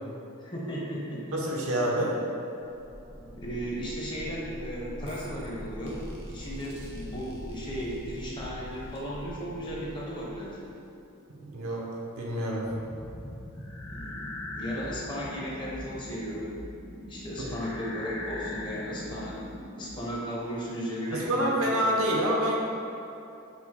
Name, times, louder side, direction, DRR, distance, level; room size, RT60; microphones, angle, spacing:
voice 1, 0.4-1.4 3.4-10.7 13.9-16.6 17.1-19.5 19.7-22.0, equal, 20° left, -5 dB, 0.6 m, -35 dB
voice 2, 1.3-2.1 11.4-11.9 12.2-12.7 17.4-17.5 21.1-22.6, equal, 70° right, -2 dB, 0.6 m, -27 dB
sound 1, 2.6-11.1, equal, 30° right, 0.5 m, -43 dB
sound 2, 12.6-20.1, left 1 dB, 85° left, 1.1 m, -40 dB
4.6 x 2.1 x 4.1 m, 2.8 s
head